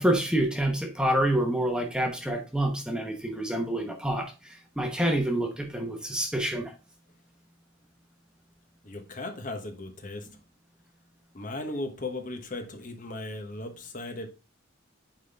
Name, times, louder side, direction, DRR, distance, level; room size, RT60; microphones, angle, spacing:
voice 1, 0.0-6.7, right 1 dB, 5° right, 1.1 m, -27 dB
voice 2, 8.8-10.3 11.3-14.3, left 2 dB, 40° left, 1.1 m, -37 dB
9.2 x 4.0 x 3.4 m
head